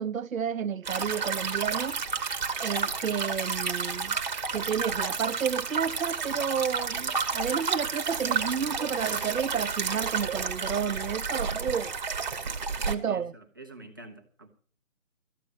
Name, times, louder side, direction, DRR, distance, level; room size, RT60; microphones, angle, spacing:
voice 1, 0.0-2.0 2.6-4.2 4.5-11.9 12.9-13.3, right 7 dB, 80° right, 0.7 m, -31 dB
sound 1, 0.9-12.9, right 5 dB, 35° right, 1.2 m, -31 dB
voice 2, 13.1-14.5, right 2 dB, 15° right, 0.7 m, -46 dB
13.5 x 9.1 x 6.1 m
figure-of-eight pair, 160°, 41 cm